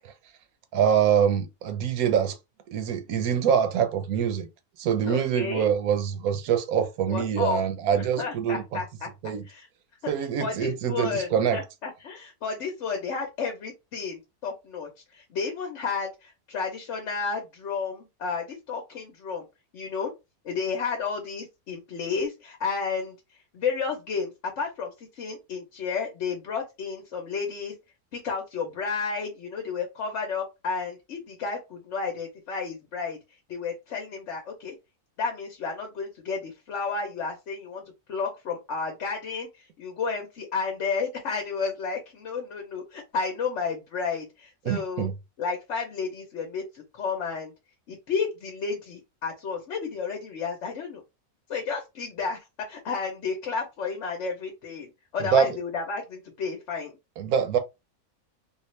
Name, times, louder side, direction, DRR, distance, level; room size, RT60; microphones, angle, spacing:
voice 1, 0.7-2.4 2.7-4.5 4.8-8.8 9.2-9.4 10.1-11.6 44.7-45.1 55.2-55.5 57.2-57.6, right 8 dB, 75° right, 1.1 m, -24 dB
voice 2, 5.1-5.7 7.1-7.6 7.9-9.1 9.5-9.7 10.0-19.5 19.7-20.1 20.4-23.2 23.5-27.7 28.1-33.2 33.5-34.7 35.2-37.8 38.1-45.1 45.4-47.5 47.9-51.0 51.5-56.9, left 5 dB, 60° left, 1.0 m, -32 dB
3.5 x 2.4 x 3.1 m
omnidirectional pair, 1.6 m